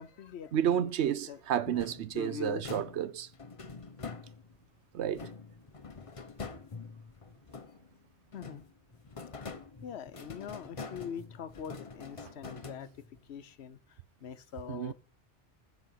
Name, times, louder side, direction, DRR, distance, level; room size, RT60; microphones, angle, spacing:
voice 1, 0.0-0.5 0.8-1.4 2.1-2.6 8.3-8.6 9.3-9.4 9.8-13.8 14.2-14.9, left 8 dB, 65° left, 1.0 m, -43 dB
voice 2, 0.5-3.3 4.9-5.3 14.7-14.9, right 9 dB, 70° right, 0.9 m, -31 dB
sound 1, 1.7-4.7 5.1-8.0 8.3-13.3, left 4 dB, 30° left, 0.8 m, -45 dB
10.0 x 6.2 x 5.7 m
omnidirectional pair, 1.2 m